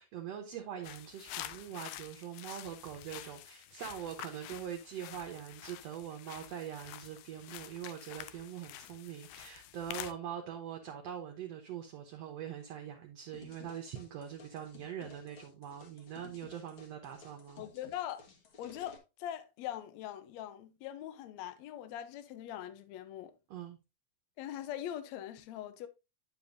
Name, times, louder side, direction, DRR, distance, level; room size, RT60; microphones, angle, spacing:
voice 1, 0.0-17.6 23.5-23.8, right 9 dB, 65° right, 1.8 m, -43 dB
sound 1, 0.8-10.1, left 14 dB, 90° left, 2.3 m, -48 dB
sound 2, 13.3-19.0, left 4 dB, 50° left, 1.8 m, -56 dB
voice 2, 17.6-18.2 18.6-23.3 24.4-25.9, left 11 dB, 75° left, 1.7 m, -42 dB
9.0 x 7.1 x 2.6 m
omnidirectional pair, 3.9 m